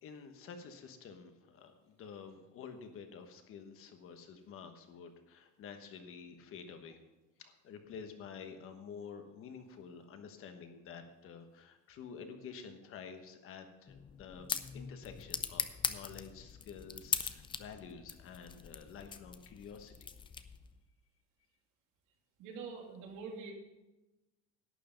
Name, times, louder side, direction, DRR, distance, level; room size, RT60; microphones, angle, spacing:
voice 1, 0.0-7.0 7.4-20.1, left 6 dB, 45° left, 6 dB, 1.2 m, -50 dB
sound 1, 13.9-20.8, left 6 dB, 15° left, 0.4 m, -41 dB
voice 2, 22.4-23.5, right 5 dB, 90° right, 1 dB, 2.7 m, -45 dB
11.5 x 9.6 x 5.2 m, 1.0 s
cardioid pair, 180°, 31 cm